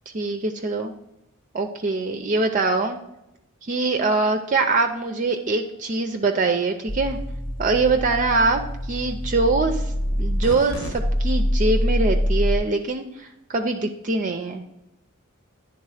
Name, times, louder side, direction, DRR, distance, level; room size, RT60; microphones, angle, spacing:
voice 1, 0.1-0.9 1.5-3.0 3.6-7.2 7.6-8.6 8.9-14.6, right 3 dB, 35° right, 5 dB, 0.5 m, -23 dB
sound 1, 6.9-12.6, equal, 70° left, 1.2 m, -25 dB
9.8 x 3.6 x 4.8 m, 0.86 s
head